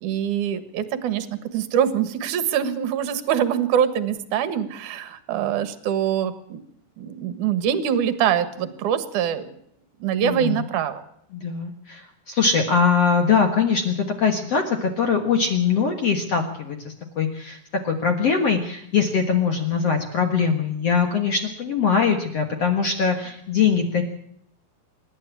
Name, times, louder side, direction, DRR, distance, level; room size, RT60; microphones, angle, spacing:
voice 1, 0.0-6.6 7.0-9.5 10.0-11.0, right 9 dB, 60° right, 11 dB, 2.3 m, -24 dB
voice 2, 10.2-10.6 11.3-16.8 17.2-17.6 17.8-24.0, left 6 dB, 60° left, 4 dB, 1.6 m, -22 dB
26.0 x 12.0 x 8.5 m, 0.72 s
omnidirectional pair, 5.2 m